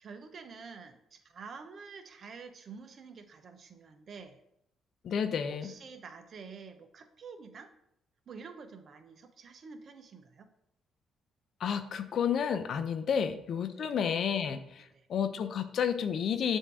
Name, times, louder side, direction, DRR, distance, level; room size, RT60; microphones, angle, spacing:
voice 1, 0.0-4.4 5.5-7.7 8.3-10.5 13.1-13.2 13.8-14.0 14.8-15.1, right 5 dB, 55° right, 7 dB, 0.7 m, -48 dB
voice 2, 5.0-5.7 11.6-14.8 15.1-16.6, left 7 dB, 65° left, 10 dB, 0.5 m, -31 dB
7.4 x 2.7 x 4.7 m, 0.77 s
cardioid pair, 90°, 0 cm